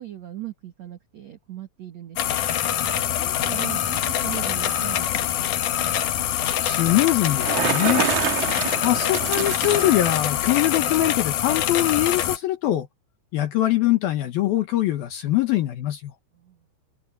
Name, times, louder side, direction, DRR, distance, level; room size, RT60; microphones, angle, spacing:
voice 1, 0.0-2.4 3.2-5.5 16.3-16.6, right 14 dB, 90° right, 1.5 m, -39 dB
sound 1, 2.2-12.4, left 10 dB, 85° left, 1.7 m, -24 dB
voice 2, 6.6-8.1 8.8-12.9 13.3-16.1, left 14 dB, 70° left, 2.4 m, -22 dB
Bicycle, 7.2-10.1, right 10 dB, 65° right, 1.9 m, -27 dB
omnidirectional pair, 5.6 m